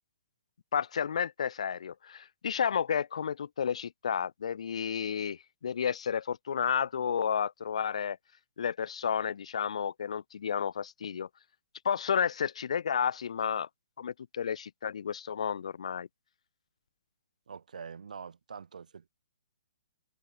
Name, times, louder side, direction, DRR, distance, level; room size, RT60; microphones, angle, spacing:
voice 1, 0.7-8.2 8.6-11.3 11.8-13.7 14.0-16.1, left 7 dB, 55° left, 1.4 m, -31 dB
voice 2, 17.5-19.1, right 6 dB, 80° right, 3.5 m, -44 dB
hypercardioid pair, 180°, 4 cm